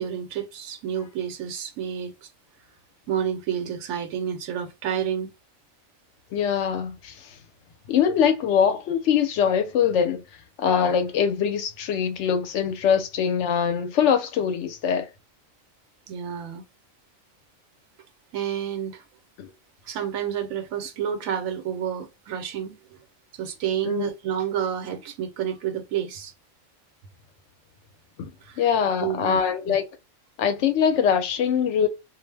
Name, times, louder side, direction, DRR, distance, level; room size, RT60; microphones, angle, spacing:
voice 1, 0.0-2.3 3.1-5.3 16.1-16.6 18.3-19.0 19.8-23.0 23.3-26.3 28.4-28.7 29.0-29.7, right 9 dB, 90° right, 1.0 m, -30 dB
voice 2, 6.3-7.3 7.9-10.2 10.6-15.1 19.4-19.5 23.8-24.1 28.2-28.3 28.6-29.8 30.4-31.9, left 7 dB, 70° left, 0.8 m, -23 dB
2.4 x 2.0 x 3.2 m
omnidirectional pair, 1.4 m